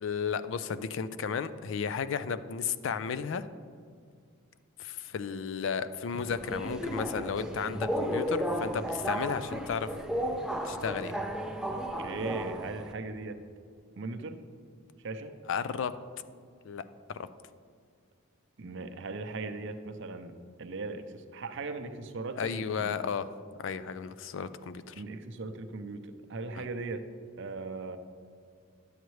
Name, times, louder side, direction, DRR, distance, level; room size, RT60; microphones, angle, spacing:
voice 1, 0.0-3.5 4.8-9.9 10.6-11.2 15.5-15.9 16.6-16.8 22.4-23.3 23.6-24.9 26.6-26.7, left 6 dB, 65° left, 14 dB, 0.4 m, -33 dB
Subway metro underground, 6.1-12.9, equal, 5° right, 0.4 m, -34 dB
voice 2, 11.7-13.4 14.0-14.4 15.0-15.4 18.6-22.9 25.0-27.0 27.4-28.0, right 3 dB, 60° right, 8 dB, 0.6 m, -38 dB
10.0 x 8.0 x 3.1 m, 2.2 s
head